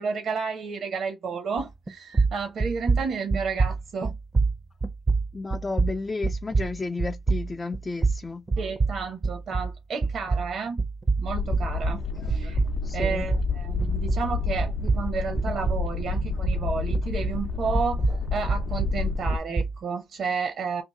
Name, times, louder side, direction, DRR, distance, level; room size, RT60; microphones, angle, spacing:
voice 1, 0.0-4.1 8.6-10.8 11.2-12.0 12.3-12.6 12.9-20.8, right 5 dB, 60° right, 0.8 m, -31 dB
Heartbeat Foley, 1.6-1.9 2.1-9.8 10.0-14.3 14.6-17.4 17.7-19.8, right 4 dB, 25° right, 0.5 m, -26 dB
voice 2, 5.3-8.4 12.1-12.4 12.8-13.3, left 3 dB, 25° left, 0.4 m, -33 dB
sound 1, 11.3-19.4, left 5 dB, 70° left, 0.7 m, -29 dB
2.7 x 2.5 x 3.7 m
cardioid pair, 90°, 0 cm